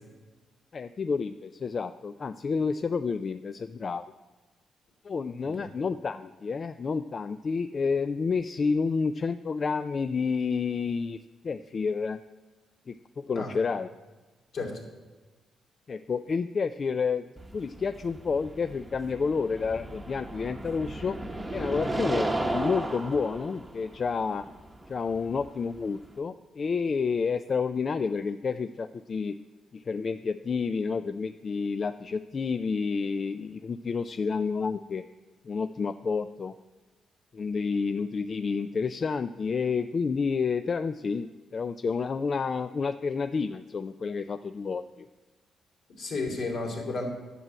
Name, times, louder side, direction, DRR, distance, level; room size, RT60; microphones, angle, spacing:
voice 1, 0.7-4.1 5.0-12.2 12.9-13.9 15.9-17.2 17.5-21.2 21.5-24.5 24.9-29.4 29.7-35.0 35.5-36.5 37.3-45.1, left 5 dB, 35° left, 11 dB, 0.3 m, -30 dB
sound 1, 17.4-26.2, right 1 dB, 10° right, 1.0 m, -35 dB
voice 2, 46.0-47.1, left 3 dB, 65° left, 1 dB, 3.0 m, -33 dB
11.0 x 7.6 x 7.5 m, 1.3 s
cardioid pair, 140°, 0 cm